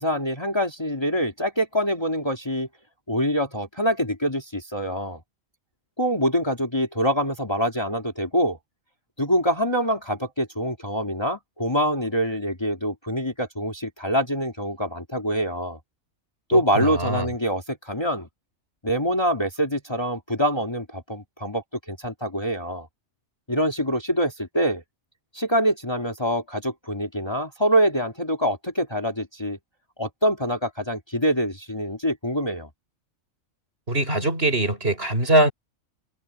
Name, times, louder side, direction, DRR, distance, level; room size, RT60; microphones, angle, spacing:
voice 1, 0.0-2.7 3.1-5.2 6.0-8.6 9.2-15.8 16.5-18.3 18.8-22.9 23.5-24.8 25.3-29.6 30.0-32.7, equal, 20° left, 2.4 m, -25 dB
voice 2, 16.5-17.3 33.9-35.5, right 1 dB, 45° right, 6.2 m, -22 dB
omnidirectional pair, 1.4 m